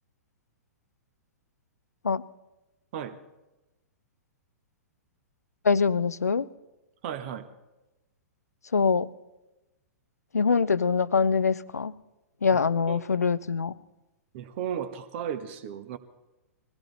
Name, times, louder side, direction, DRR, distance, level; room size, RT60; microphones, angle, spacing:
voice 1, 5.6-6.5 8.7-9.1 10.3-11.9 12.4-13.7, left 5 dB, 80° left, 0.5 m, -24 dB
voice 2, 7.0-7.5 12.5-12.6 12.9-13.0 14.3-16.0, right 9 dB, 45° right, 1.4 m, -34 dB
21.0 x 15.5 x 4.1 m
figure-of-eight pair, 110°, 8 cm